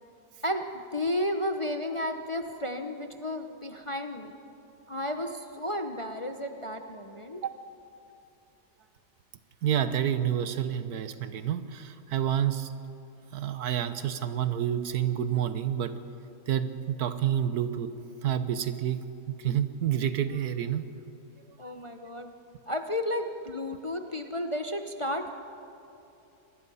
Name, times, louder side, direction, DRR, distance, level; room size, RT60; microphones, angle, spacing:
voice 1, 0.4-4.3 4.9-7.4 21.6-22.4 22.7-25.3, left 1 dB, 25° left, 5 dB, 0.7 m, -33 dB
voice 2, 9.6-12.7 13.3-15.9 16.5-17.9 18.2-20.8, right 10 dB, 75° right, 11 dB, 1.5 m, -29 dB
26.0 x 20.0 x 5.6 m, 2.8 s
omnidirectional pair, 1.7 m